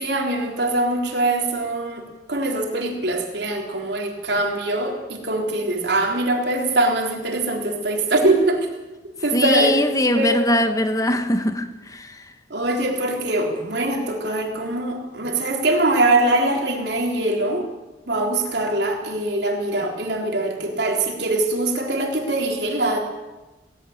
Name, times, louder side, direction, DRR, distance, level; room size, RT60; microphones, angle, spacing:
voice 1, 0.0-2.0 2.3-8.7 9.2-9.7 10.1-10.5 12.5-17.6 18.1-23.0, right 2 dB, 65° right, 3.8 m, -22 dB
voice 2, 9.3-11.6 11.9-12.1, left 1 dB, 20° left, 1.3 m, -20 dB
19.5 x 18.5 x 7.3 m
head